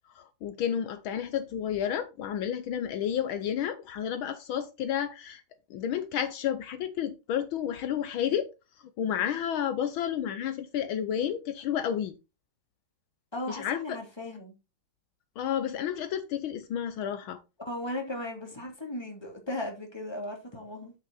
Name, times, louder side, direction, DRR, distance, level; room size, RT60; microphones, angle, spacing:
voice 1, 0.1-5.4 5.7-8.5 9.0-12.1 13.5-14.0 15.4-17.4, left 9 dB, 75° left, 1.6 m, -31 dB
voice 2, 13.3-14.5 17.6-20.9, left 1 dB, 10° left, 2.9 m, -36 dB
8.6 x 8.4 x 4.0 m
omnidirectional pair, 2.3 m